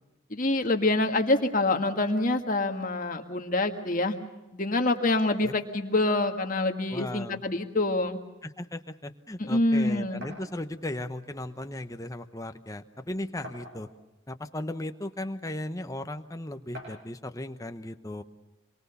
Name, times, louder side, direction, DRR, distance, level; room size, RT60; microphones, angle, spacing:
voice 1, 0.3-4.2 4.5-8.2 9.4-10.2, left 2 dB, 40° left, 5 dB, 1.8 m, -26 dB
voice 2, 6.9-7.4 8.4-13.9 14.3-18.2, left 1 dB, 15° left, 8 dB, 0.9 m, -36 dB
sound 1, 10.2-10.5 11.6-11.7 12.1-12.2 13.4-14.1 14.9-15.0 16.7-17.1, equal, 55° right, 7.2 m, -44 dB
27.0 x 23.5 x 7.0 m, 1.0 s
head